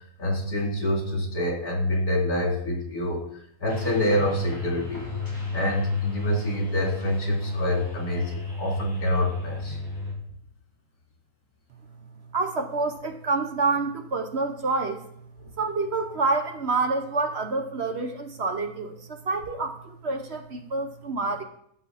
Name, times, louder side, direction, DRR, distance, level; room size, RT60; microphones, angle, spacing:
voice 1, 0.2-3.2 3.6-5.1 5.5-9.8, left 1 dB, 85° left, -1 dB, 3.3 m, -26 dB
sound 1, 3.7-10.1, left 3 dB, 15° left, 3.7 m, -33 dB
voice 2, 12.3-15.0 15.6-21.4, right 3 dB, 50° right, 6 dB, 1.0 m, -27 dB
14.0 x 6.1 x 4.1 m, 0.68 s
omnidirectional pair, 1.6 m